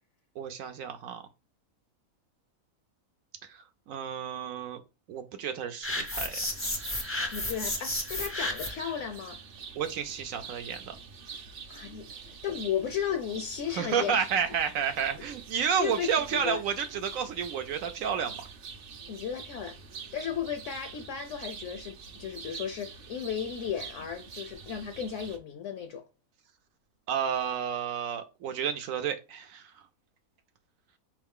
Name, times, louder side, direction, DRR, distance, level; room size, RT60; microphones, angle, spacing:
voice 1, 0.4-1.2 3.4-4.8 5.1-6.4 9.7-11.0 13.7-18.5 27.1-29.9, right 7 dB, 75° right, 1.0 m, -31 dB
sound 1, 5.8-8.9, left 1 dB, 15° left, 0.5 m, -32 dB
sound 2, 6.5-25.4, right 5 dB, 55° right, 0.7 m, -46 dB
voice 2, 7.3-9.4 11.7-14.2 15.8-16.6 19.1-19.8 20.1-26.1, left 8 dB, 70° left, 0.8 m, -35 dB
4.6 x 3.2 x 3.5 m
omnidirectional pair, 1.5 m